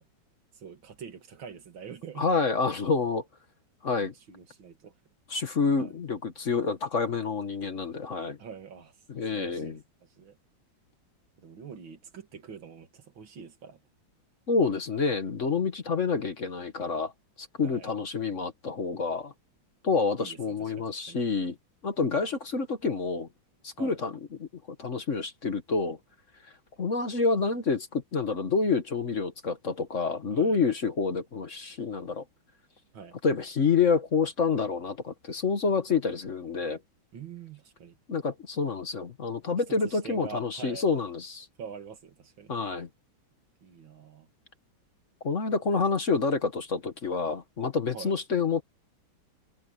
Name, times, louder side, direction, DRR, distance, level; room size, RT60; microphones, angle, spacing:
voice 1, 0.5-2.3 4.0-4.9 5.8-5.9 8.4-9.0 9.3-10.4 11.4-13.8 17.6-17.9 20.2-21.2 23.8-24.0 30.3-30.6 32.9-33.2 37.1-38.0 39.7-40.8 41.6-42.5 43.6-44.3 47.9-48.1, right 6 dB, 85° right, 2.7 m, -45 dB
voice 2, 2.2-3.2 3.8-4.1 5.3-8.4 9.1-9.8 14.5-17.1 17.4-19.3 19.8-21.6 21.8-23.3 23.6-24.1 24.4-24.5 24.8-26.0 26.8-32.2 33.2-36.8 38.1-41.5 42.5-42.9 45.2-48.6, left 4 dB, 45° left, 1.5 m, -28 dB
omnidirectional pair, 2.1 m